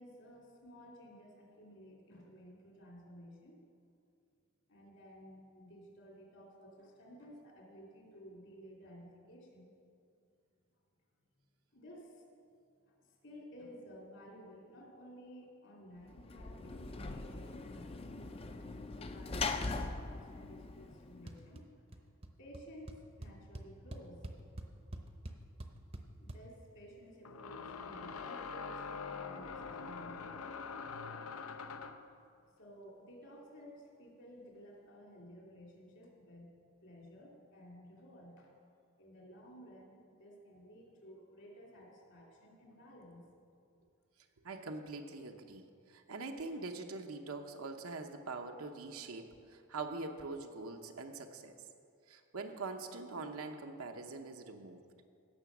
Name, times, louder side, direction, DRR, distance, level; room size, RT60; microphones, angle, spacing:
voice 1, 0.0-3.6 4.7-9.7 11.7-12.2 12.8-18.1 19.0-21.7 22.4-24.2 26.2-30.5 31.3-31.4 32.6-36.5 36.8-38.5 39.0-43.4, equal, 60° left, -1 dB, 2.7 m, -55 dB
Sliding door / Slam, 16.1-21.5, left 3 dB, 25° left, 0.4 m, -41 dB
sound 1, 21.3-21.6 21.9-22.3 22.5-22.6 22.9-26.4, right 1 dB, 25° right, 0.7 m, -46 dB
sound 2, 25.3-25.4 27.3-32.1, left 5 dB, 85° left, 0.7 m, -44 dB
voice 2, 44.4-51.5 52.1-54.8, right 3 dB, 85° right, 4 dB, 0.9 m, -43 dB
16.5 x 6.8 x 6.1 m, 2.4 s
head